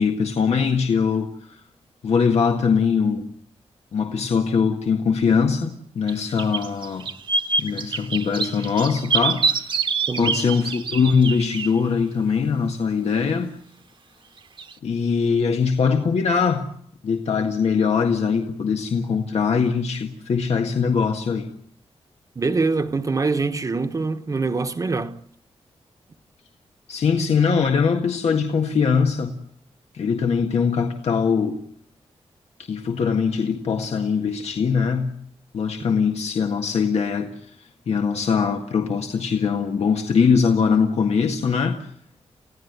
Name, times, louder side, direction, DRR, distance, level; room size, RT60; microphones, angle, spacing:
voice 1, 0.0-1.6 2.0-3.3 3.9-7.0 7.6-9.8 10.2-13.6 14.8-16.7 17.0-21.5 26.9-29.4 29.9-31.6 32.7-35.1 35.5-41.9, left 6 dB, 80° left, 1.8 m, -22 dB
sound 1, 6.1-6.2 6.4-11.7 14.6-14.7, right 4 dB, 50° right, 1.3 m, -25 dB
voice 2, 10.1-10.4 22.3-25.2, right 3 dB, 30° right, 1.2 m, -24 dB
29.5 x 16.5 x 9.5 m
wide cardioid pair, 180°, 11 cm